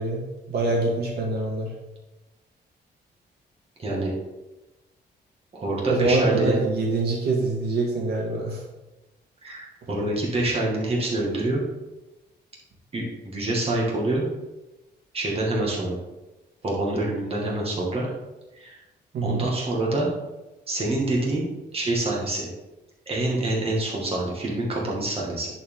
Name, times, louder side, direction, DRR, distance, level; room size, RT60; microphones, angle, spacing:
voice 1, 0.0-1.7 5.9-8.6 19.1-19.5, right 2 dB, 60° right, -2 dB, 2.3 m, -25 dB
voice 2, 3.8-4.1 5.5-6.6 9.4-11.6 12.9-13.0 13.3-14.3 15.1-16.0 16.6-18.1 18.5-18.8 19.2-20.1 20.7-21.5 21.7-22.5 23.1-25.5, right 2 dB, 30° right, -3 dB, 2.1 m, -26 dB
10.5 x 4.5 x 3.8 m, 1.1 s
cardioid pair, 155°, 18 cm